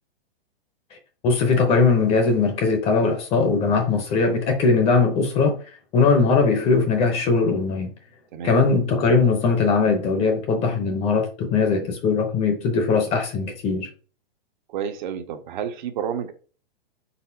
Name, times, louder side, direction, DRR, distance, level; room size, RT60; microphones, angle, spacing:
voice 1, 1.2-5.6 5.9-7.9 8.4-13.9, left 4 dB, 20° left, 0.7 m, -20 dB
voice 2, 14.7-16.3, right 8 dB, 50° right, 0.7 m, -30 dB
4.1 x 3.9 x 2.7 m
hypercardioid pair, 145°, 30 cm